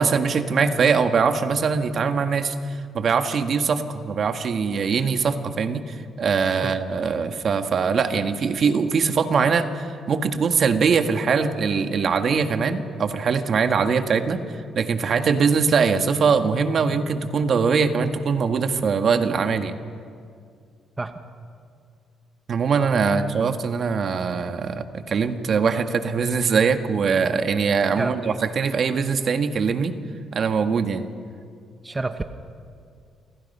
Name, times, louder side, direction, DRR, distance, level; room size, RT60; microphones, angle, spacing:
voice 1, 0.0-14.4 14.7-19.8 22.5-29.9 30.3-31.1, right 5 dB, 55° right, 7 dB, 1.6 m, -22 dB
voice 2, 28.0-28.4 31.8-32.3, right 3 dB, 20° right, 8 dB, 1.2 m, -28 dB
29.0 x 25.5 x 5.6 m, 2.3 s
cardioid pair, 90°, 0 cm